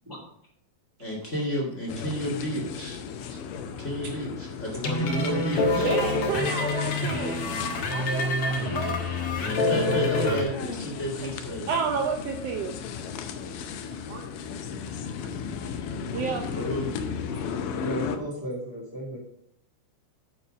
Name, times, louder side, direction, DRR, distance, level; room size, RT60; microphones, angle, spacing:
voice 1, 1.0-3.0 3.8-5.9 9.4-11.7 14.8-15.2 15.9-16.9, equal, 30° left, -1 dB, 1.6 m, -32 dB
sound 1, 1.9-18.2, left 6 dB, 80° left, 2.4 m, -35 dB
sound 2, 4.8-10.4, left 2 dB, 55° left, 2.0 m, -26 dB
voice 2, 5.8-7.4 7.9-9.0 10.5-10.6 11.2-11.3 11.7-12.7 14.1-14.2 16.1-16.4, right 5 dB, 85° right, 4 dB, 1.4 m, -31 dB
voice 3, 17.4-19.2, right 1 dB, 5° right, -7 dB, 2.1 m, -35 dB
9.6 x 6.7 x 5.0 m, 0.71 s
omnidirectional pair, 3.8 m